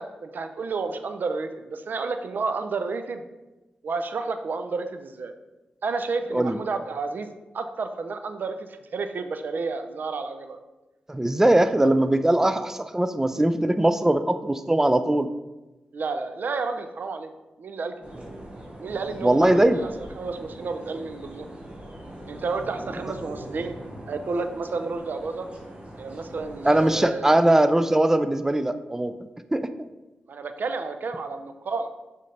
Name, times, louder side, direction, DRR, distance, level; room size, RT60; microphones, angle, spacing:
voice 1, 0.0-3.2 3.8-5.3 5.8-7.3 7.5-10.6 15.9-17.3 17.6-17.9 18.8-19.9 20.2-21.5 22.3-23.7 24.1-25.5 26.0-27.3 30.3-31.9, right 4 dB, 70° right, 8 dB, 0.6 m, -31 dB
voice 2, 11.1-15.3 19.2-19.8 26.6-29.1 29.5-29.9, right 1 dB, 15° right, 10 dB, 0.4 m, -21 dB
sound 1, 18.0-27.0, right 1 dB, 40° right, 1.9 m, -41 dB
6.6 x 5.1 x 3.3 m, 1.1 s
cardioid pair, 55°, 3 cm